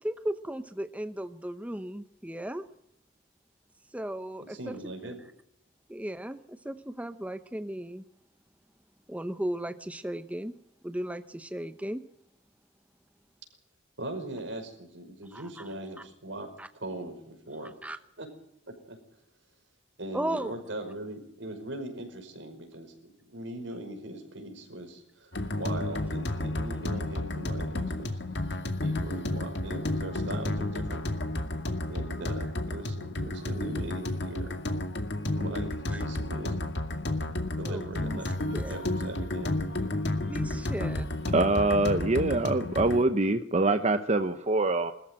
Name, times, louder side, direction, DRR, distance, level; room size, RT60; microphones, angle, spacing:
voice 1, 0.0-2.7 3.9-4.7 5.0-5.2 5.9-8.0 9.1-10.5 10.8-12.0 15.3-15.6 16.6-16.7 17.6-18.0 20.1-20.6 35.9-36.0 37.6-38.2 38.5-38.8 40.3-41.1, right 1 dB, 10° right, 10 dB, 0.8 m, -36 dB
voice 2, 4.4-5.1 14.0-16.5 16.7-18.3 18.9-19.0 20.0-28.2 28.8-31.0 31.9-34.5 35.3-36.7 37.6-39.6, right 1 dB, 75° right, 5 dB, 5.4 m, -40 dB
sound 1, 25.3-43.0, left 1 dB, 65° left, 2.3 m, -32 dB
voice 3, 41.3-44.9, right 2 dB, 35° right, 9 dB, 0.9 m, -24 dB
21.5 x 14.0 x 9.0 m, 0.79 s
head